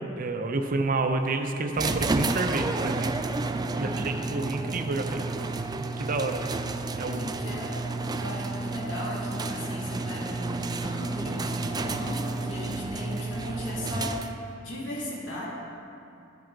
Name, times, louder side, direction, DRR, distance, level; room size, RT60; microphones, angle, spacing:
voice 1, 0.0-3.1 3.8-5.4 5.8-6.4 7.0-7.3, right 3 dB, 45° right, 5 dB, 0.7 m, -29 dB
sound 1, 1.8-14.5, right 3 dB, 20° right, 0.4 m, -31 dB
voice 2, 3.7-4.3 7.1-15.5, left 1 dB, 80° left, -6 dB, 2.5 m, -36 dB
12.5 x 7.7 x 3.9 m, 2.6 s
head